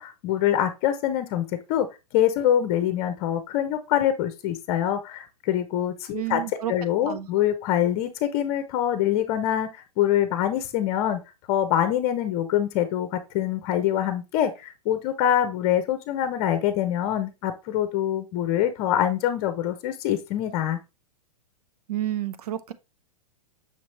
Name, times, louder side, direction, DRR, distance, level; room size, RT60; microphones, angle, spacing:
voice 1, 0.0-1.9 2.1-11.2 11.5-20.8, left 11 dB, 40° left, 0.8 m, -25 dB
voice 2, 6.1-6.7 7.1-7.3 21.9-22.7, right 13 dB, 70° right, 0.6 m, -30 dB
5.8 x 3.1 x 2.9 m
hypercardioid pair, 120°, 20 cm